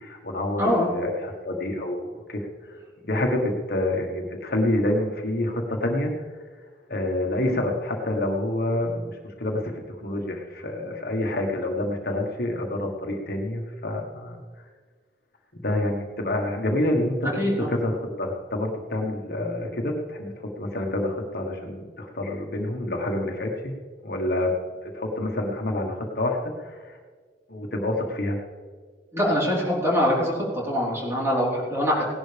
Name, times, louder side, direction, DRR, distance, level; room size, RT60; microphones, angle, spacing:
voice 1, 0.0-2.4 3.0-6.1 6.9-9.1 9.4-9.6 9.9-14.4 15.6-17.3 17.7-23.7 24.0-24.5 24.8-27.0 27.5-28.4, left 1 dB, 60° left, 1 dB, 1.5 m, -27 dB
voice 2, 0.6-0.9 17.4-17.7 29.1-30.4 30.6-32.0, equal, 15° right, -5 dB, 4.1 m, -23 dB
17.5 x 11.5 x 3.5 m, 1.5 s
head